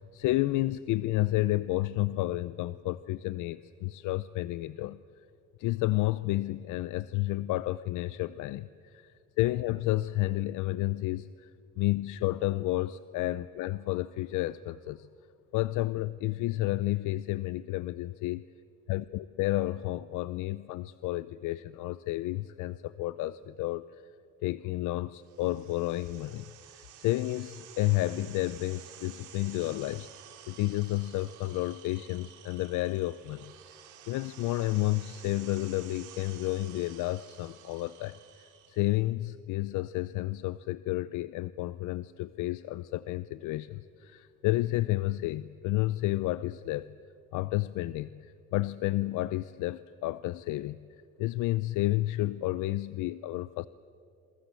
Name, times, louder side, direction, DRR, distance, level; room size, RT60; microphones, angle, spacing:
voice 1, 0.0-5.0 5.6-11.5 11.8-15.1 15.5-18.4 18.9-23.9 24.4-26.5 27.0-30.1 30.5-33.5 34.1-46.9 47.3-50.8 51.2-53.7, left 17 dB, 85° left, 16 dB, 0.6 m, -31 dB
sound 1, 25.2-39.0, right 10 dB, 80° right, 2.9 m, -52 dB
27.5 x 24.0 x 7.6 m, 2.4 s
cardioid pair, 140°, 30 cm